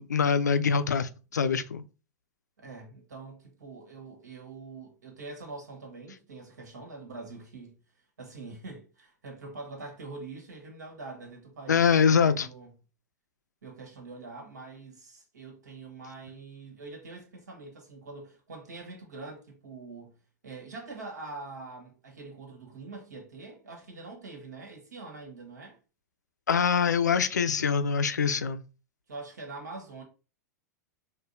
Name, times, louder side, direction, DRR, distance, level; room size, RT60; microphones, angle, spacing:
voice 1, 0.0-1.8 11.7-12.5 26.5-28.6, left 6 dB, 75° left, 0.4 m, -24 dB
voice 2, 2.6-7.8 8.2-12.7 13.6-20.2 20.4-25.8 29.1-30.0, right 3 dB, 70° right, 1.3 m, -44 dB
4.9 x 2.2 x 2.5 m
figure-of-eight pair, 95°, 9 cm